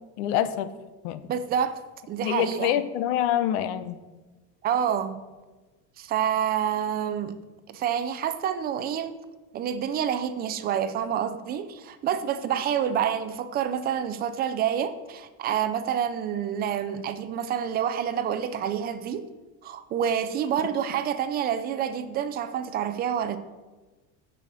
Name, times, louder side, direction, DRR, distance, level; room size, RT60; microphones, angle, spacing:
voice 1, 0.2-0.7 1.0-1.2 2.2-4.0, left 11 dB, 90° left, 13 dB, 0.8 m, -26 dB
voice 2, 1.3-1.8 2.1-2.7 4.6-5.2 6.0-7.4 7.7-9.1 9.5-19.2 19.6-23.4, right 9 dB, 30° right, 11 dB, 0.4 m, -28 dB
6.6 x 6.4 x 7.5 m, 1.2 s
cardioid pair, 175°, 32 cm